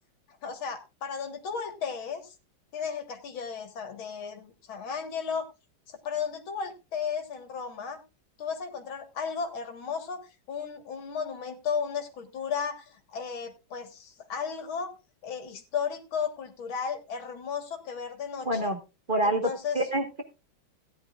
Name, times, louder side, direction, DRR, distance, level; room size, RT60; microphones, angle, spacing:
voice 1, 0.4-2.4 2.7-5.5 5.9-8.0 8.4-10.2 10.5-15.0 15.2-18.7 19.2-19.8, left 6 dB, 90° left, 7 dB, 2.4 m, -34 dB
voice 2, 18.4-18.8 19.1-19.5 19.7-20.2, right 1 dB, 30° right, 5 dB, 1.4 m, -26 dB
17.0 x 10.5 x 2.4 m, 0.27 s
omnidirectional pair, 2.2 m